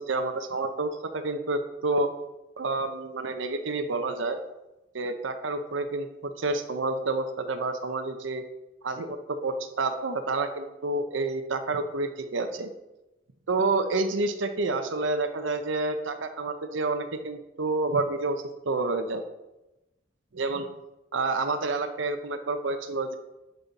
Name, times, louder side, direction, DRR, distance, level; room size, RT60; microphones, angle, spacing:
voice 1, 0.0-2.1 2.6-4.4 4.9-8.4 8.8-12.7 13.5-19.2 20.3-20.7 21.1-23.1, right 3 dB, 80° right, 7 dB, 0.7 m, -29 dB
10.5 x 5.5 x 4.1 m, 0.97 s
head